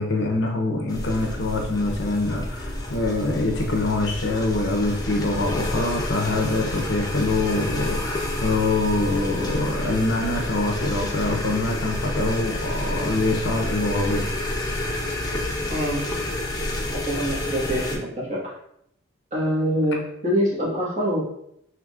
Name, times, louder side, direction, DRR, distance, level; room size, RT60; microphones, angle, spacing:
voice 1, 0.0-14.3, left 2 dB, 60° left, 2 dB, 0.6 m, -24 dB
sound 1, 0.9-18.0, left 1 dB, 20° left, 0.6 m, -29 dB
voice 2, 15.7-16.1 17.0-18.5 19.3-21.2, equal, 35° right, -6 dB, 1.5 m, -25 dB
4.8 x 3.1 x 2.4 m, 0.72 s
head